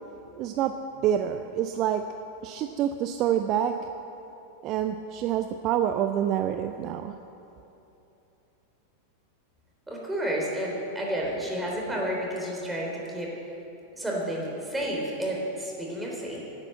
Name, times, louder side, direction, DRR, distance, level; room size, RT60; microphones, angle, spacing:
voice 1, 0.4-0.7 1.0-2.0 2.4-3.8 4.6-7.2, right 10 dB, 35° right, 8 dB, 0.5 m, -27 dB
voice 2, 9.9-13.3 14.0-16.4, right 1 dB, 5° right, -3 dB, 3.6 m, -31 dB
11.0 x 9.9 x 8.1 m, 3.0 s
figure-of-eight pair, 90°, 0 cm